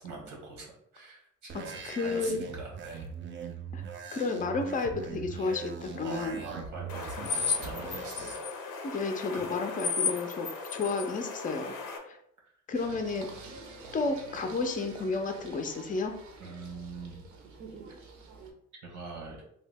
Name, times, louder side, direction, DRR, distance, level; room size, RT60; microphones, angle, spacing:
voice 1, 0.0-3.1 6.0-8.4 10.6-10.8 16.4-17.3 18.8-19.4, right 3 dB, 90° right, -2 dB, 1.2 m, -43 dB
sound 1, 1.5-8.3, right 6 dB, 40° right, 0.4 m, -41 dB
voice 2, 1.8-2.4 3.7-3.8 4.1-6.4 8.8-11.7 12.0-12.2 12.7-13.3 13.9-16.1, left 3 dB, 25° left, 5 dB, 0.4 m, -32 dB
sound 2, 6.9-12.0, left 5 dB, 90° left, 0.6 m, -34 dB
Singing, 12.7-18.5, right 4 dB, 70° right, 0.7 m, -47 dB
2.8 x 2.0 x 3.3 m, 0.73 s
cardioid pair, 90°, 30 cm